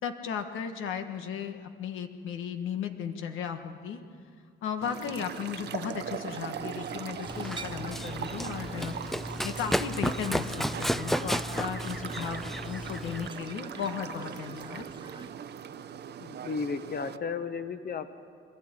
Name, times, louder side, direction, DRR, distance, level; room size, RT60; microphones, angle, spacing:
voice 1, 0.0-4.0 4.6-8.9 9.4-14.9, left 7 dB, 85° left, 6 dB, 1.5 m, -35 dB
sound 1, 4.8-17.2, right 8 dB, 55° right, 0.8 m, -40 dB
sound 2, 4.9-15.3, right 3 dB, 20° right, 1.4 m, -46 dB
Run, 7.3-13.3, equal, ahead, 0.5 m, -33 dB
voice 2, 16.2-18.1, left 5 dB, 50° left, 10 dB, 1.3 m, -34 dB
26.0 x 13.5 x 9.1 m, 2.2 s
cardioid pair, 90°, 20 cm